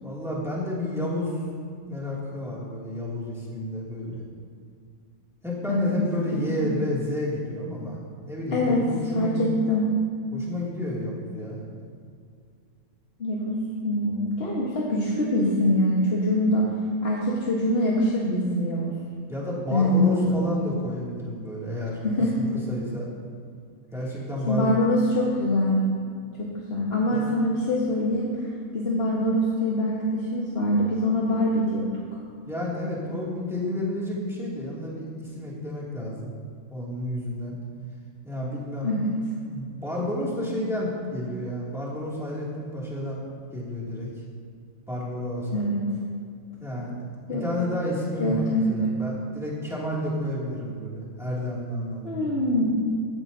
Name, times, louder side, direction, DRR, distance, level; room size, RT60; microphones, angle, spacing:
voice 1, 0.0-1.4 1.9-4.2 5.4-8.0 8.2-9.4 10.3-11.6 19.3-23.1 23.9-24.8 27.1-27.2 32.4-36.3 36.7-37.5 38.2-38.9 39.5-43.2 43.5-44.1 44.9-45.6 46.6-52.3, left 1 dB, ahead, -7 dB, 2.4 m, -31 dB
voice 2, 8.5-8.9 9.1-9.9 13.2-13.5 13.8-16.7 17.0-18.9 19.7-20.4 22.1-22.5 24.5-25.8 26.4-31.9 38.8-39.1 45.5-45.8 47.3-47.4 48.2-48.8 52.0-52.8, left 1 dB, 45° left, -5 dB, 1.5 m, -24 dB
14.5 x 10.5 x 2.7 m, 2.3 s
omnidirectional pair, 1.5 m